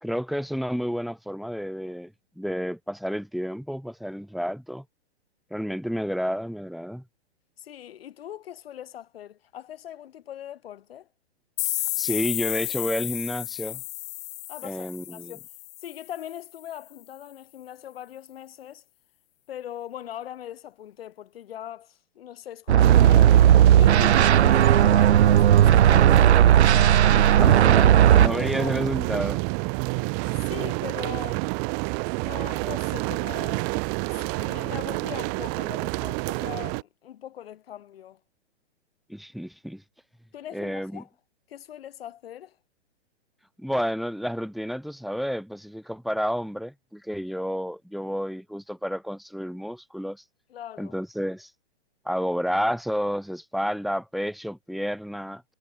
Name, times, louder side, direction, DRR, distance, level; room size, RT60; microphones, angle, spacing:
voice 1, 0.0-4.8 5.5-7.0 11.9-13.8 14.6-15.3 27.0-27.9 28.1-29.4 39.1-39.8 40.5-41.0 43.6-50.2 50.8-51.5 52.0-55.4, equal, ahead, 1.5 m, -30 dB
voice 2, 7.6-11.1 14.5-15.4 15.8-18.8 19.5-23.4 23.8-27.1 27.8-28.8 29.9-31.5 32.2-33.7 34.0-38.2 40.3-41.1 41.5-42.6 50.5-51.0, left 11 dB, 60° left, 4.7 m, -41 dB
sound 1, 11.6-16.2, left 24 dB, 20° left, 0.9 m, -32 dB
sound 2, 22.7-28.3, right 10 dB, 75° right, 1.1 m, -16 dB
sound 3, 22.8-36.8, right 40 dB or more, 30° right, 2.4 m, -29 dB
hypercardioid pair, 155°, 34 cm